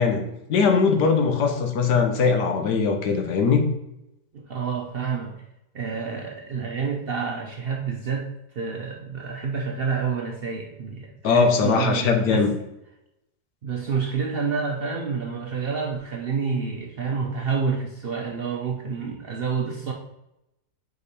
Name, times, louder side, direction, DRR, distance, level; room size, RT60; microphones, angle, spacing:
voice 1, 0.0-3.6 11.2-12.5, left 5 dB, 90° left, 4 dB, 1.5 m, -21 dB
voice 2, 4.3-5.3 5.7-8.3 8.5-12.4 13.6-19.9, right 5 dB, 65° right, 1 dB, 0.5 m, -28 dB
5.0 x 4.7 x 4.2 m, 0.86 s
omnidirectional pair, 1.7 m